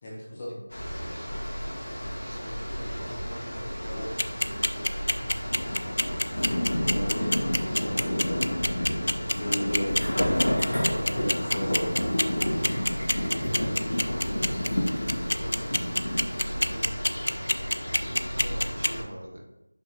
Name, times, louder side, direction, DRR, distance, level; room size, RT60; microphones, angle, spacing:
voice 1, 0.0-0.5 3.9-4.0 6.3-8.5 9.2-10.1 11.0-12.1, equal, 10° left, -7 dB, 0.7 m, -35 dB
sound 1, 0.7-19.0, equal, 80° left, 1.9 m, -30 dB
voice 2, 1.0-1.4 2.2-4.9 13.5-16.0 16.4-16.9 18.0-19.4, right 1 dB, 45° right, 2 dB, 0.9 m, -43 dB
sound 2, 4.2-18.9, left 1 dB, 60° left, 0.3 m, -25 dB
sound 3, 9.7-16.9, equal, 20° right, 1.4 m, -45 dB
5.8 x 5.5 x 3.0 m, 0.97 s
figure-of-eight pair, 180°, 0 cm